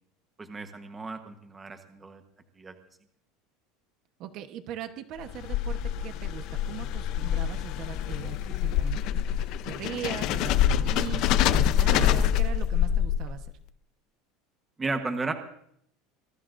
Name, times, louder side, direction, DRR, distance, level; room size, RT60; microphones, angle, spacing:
voice 1, 0.4-2.2 2.6-2.8 14.8-15.3, right 3 dB, 10° right, 5 dB, 1.2 m, -34 dB
voice 2, 4.2-9.0 9.3-13.5, right 10 dB, 40° right, 7 dB, 1.1 m, -39 dB
sound 1, 5.2-13.5, left 10 dB, 40° left, 0.7 m, -26 dB
25.0 x 21.5 x 2.6 m, 0.71 s
cardioid pair, 180°, 0 cm